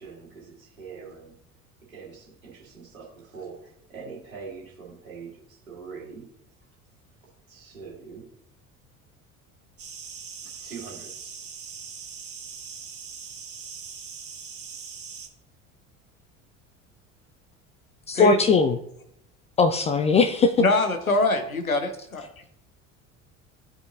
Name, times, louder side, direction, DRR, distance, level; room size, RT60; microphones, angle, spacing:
voice 1, 0.0-1.4 1.9-6.3 7.5-8.3 10.4-11.3, right 5 dB, 75° right, 2.4 m, -43 dB
sound 1, 9.8-15.3, right 6 dB, 35° right, 1.5 m, -41 dB
voice 2, 18.1-18.8 19.6-20.5, left 4 dB, 20° left, 0.3 m, -19 dB
voice 3, 20.6-22.3, left 2 dB, 90° left, 0.8 m, -23 dB
14.5 x 5.0 x 2.6 m
figure-of-eight pair, 60°, 41 cm